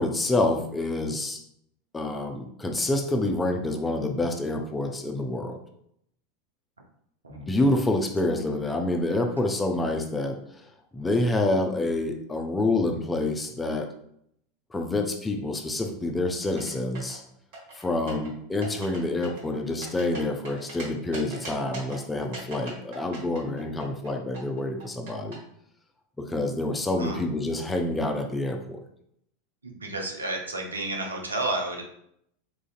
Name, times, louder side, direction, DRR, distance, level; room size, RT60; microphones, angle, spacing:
voice 1, 0.0-1.4 1.9-5.6 7.3-10.7 10.9-13.9 14.7-17.2 17.7-25.4 26.2-28.8, left 2 dB, 15° left, 4 dB, 0.4 m, -27 dB
sound 1, 16.4-17.2 17.5-18.3 18.6-19.0 19.2-20.8 21.1-22.0 22.3-24.1 24.3-25.4, right 2 dB, 55° right, 1.1 m, -40 dB
voice 2, 29.6-31.8, right 2 dB, 80° right, 1 dB, 0.6 m, -31 dB
3.8 x 2.5 x 2.4 m, 0.71 s
figure-of-eight pair, 85°, 0 cm